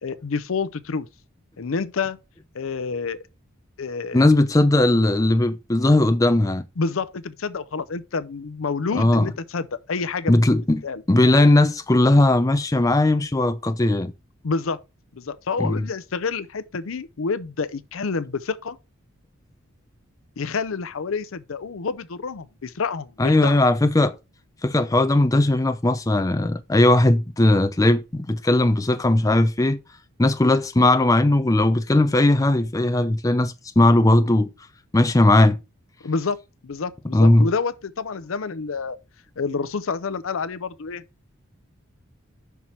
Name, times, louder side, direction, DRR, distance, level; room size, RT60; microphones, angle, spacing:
voice 1, 0.0-1.1 1.6-2.2 2.5-3.2 3.8-4.3 6.8-10.3 10.8-11.0 14.4-14.8 15.1-18.8 20.4-23.6 36.0-36.4 36.6-39.0 39.4-41.0, left 4 dB, 75° left, 0.6 m, -28 dB
voice 2, 4.1-6.6 8.9-9.3 10.3-14.1 15.6-15.8 23.2-24.1 24.6-29.8 30.2-34.5 34.9-35.6 37.1-37.5, left 1 dB, 15° left, 0.5 m, -18 dB
5.8 x 4.6 x 5.5 m
head